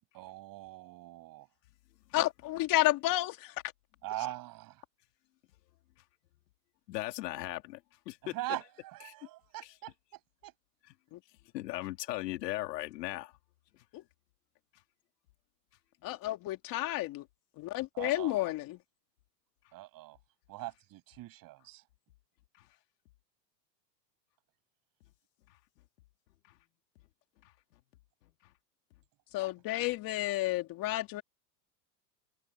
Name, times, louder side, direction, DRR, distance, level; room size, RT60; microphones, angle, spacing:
voice 1, 0.1-1.5 4.0-4.8 8.2-10.5 17.9-18.4 19.7-20.2 20.5-21.8, right 17 dB, 40° right, 7.8 m, -42 dB
voice 2, 2.1-3.6 11.1-11.2 13.9-14.0 16.0-17.2 17.6-18.8 29.3-31.2, left 16 dB, 40° left, 2.4 m, -31 dB
voice 3, 6.9-8.4 9.0-9.1 9.6-9.7 11.5-13.3 13.7-13.8 22.6-22.7 25.5-25.6 27.4-27.5 28.4-28.5, left 17 dB, 75° left, 3.3 m, -38 dB
open air
supercardioid pair, 125°, 50 cm